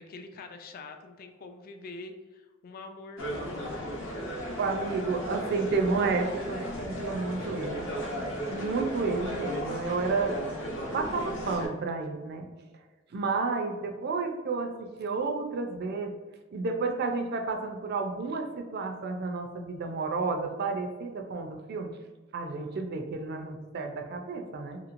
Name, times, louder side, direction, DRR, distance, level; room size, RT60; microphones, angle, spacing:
voice 1, 0.0-3.5, left 3 dB, 45° left, 6 dB, 0.3 m, -45 dB
sound 1, 3.2-11.7, equal, 70° left, 0.8 m, -35 dB
voice 2, 4.6-7.9 8.5-10.4 10.9-12.5 13.1-16.1 16.5-21.9 22.3-24.8, right 4 dB, 55° right, 4 dB, 0.4 m, -31 dB
3.1 x 2.9 x 2.5 m, 1.3 s
head